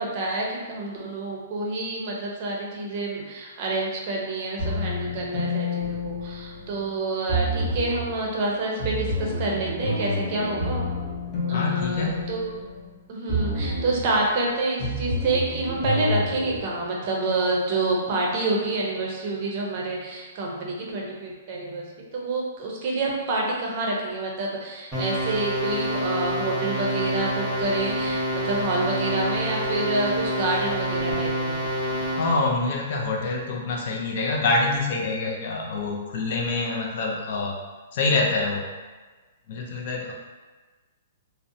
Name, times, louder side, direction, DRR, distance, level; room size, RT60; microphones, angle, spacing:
voice 1, 0.0-10.8 11.5-12.5 13.1-31.6, right 2 dB, 40° right, -2 dB, 0.5 m, -28 dB
sound 1, 4.6-6.8 7.3-8.1 8.8-12.9 13.3-14.1 14.8-16.6, left 1 dB, 20° left, 0.7 m, -29 dB
voice 2, 11.5-12.3 32.2-37.6 37.9-38.7 39.5-40.1, left 3 dB, 45° left, -2 dB, 0.4 m, -26 dB
sound 2, 24.9-32.5, equal, 10° right, 0.8 m, -27 dB
2.6 x 2.0 x 2.6 m, 1.3 s
hypercardioid pair, 165°, 0 cm